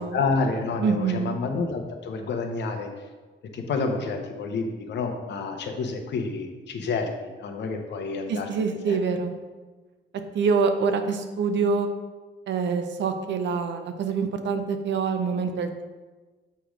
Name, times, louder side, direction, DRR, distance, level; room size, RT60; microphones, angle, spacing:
voice 1, 0.0-2.9 3.5-8.5 8.9-9.0, left 4 dB, 65° left, 4 dB, 0.9 m, -29 dB
voice 2, 0.8-1.3 8.3-9.4 10.3-11.9 12.5-15.8, right 5 dB, 70° right, 7 dB, 0.7 m, -25 dB
6.8 x 3.1 x 5.0 m, 1.3 s
cardioid pair, 110°, 20 cm